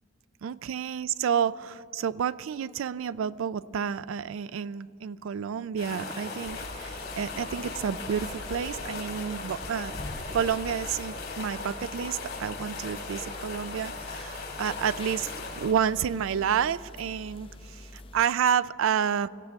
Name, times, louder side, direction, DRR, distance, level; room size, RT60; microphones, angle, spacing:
voice 1, 0.4-9.9 10.3-19.3, right 8 dB, 75° right, 18 dB, 0.3 m, -30 dB
sound 1, 5.8-15.7, left 3 dB, 50° left, 2.9 m, -38 dB
sound 2, 6.4-18.2, left 2 dB, 25° left, 0.6 m, -45 dB
25.5 x 16.0 x 3.5 m, 2.7 s
head